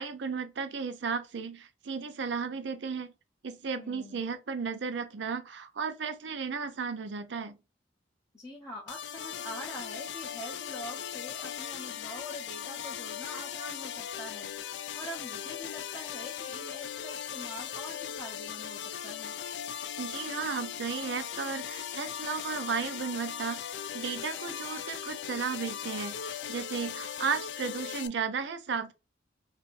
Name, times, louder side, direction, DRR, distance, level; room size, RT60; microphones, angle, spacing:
voice 1, 0.0-3.1 3.4-7.6 20.0-23.6 23.9-28.9, right 5 dB, 70° right, 0.5 m, -34 dB
voice 2, 3.7-4.2 8.3-14.5 15.0-19.3, left 1 dB, 15° left, 0.5 m, -44 dB
sound 1, 8.9-28.1, left 9 dB, 70° left, 0.3 m, -39 dB
2.6 x 2.5 x 3.8 m
head